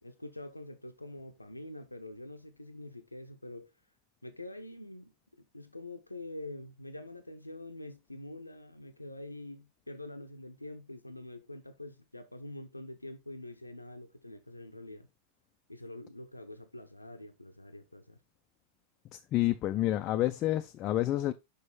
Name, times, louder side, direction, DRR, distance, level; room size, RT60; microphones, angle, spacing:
voice 1, 0.0-3.7 4.2-15.1 15.7-18.2, left 1 dB, 85° left, 0.6 m, -45 dB
voice 2, 19.1-21.3, left 14 dB, 35° left, 0.4 m, -29 dB
6.2 x 5.4 x 4.0 m
figure-of-eight pair, 90°, 0 cm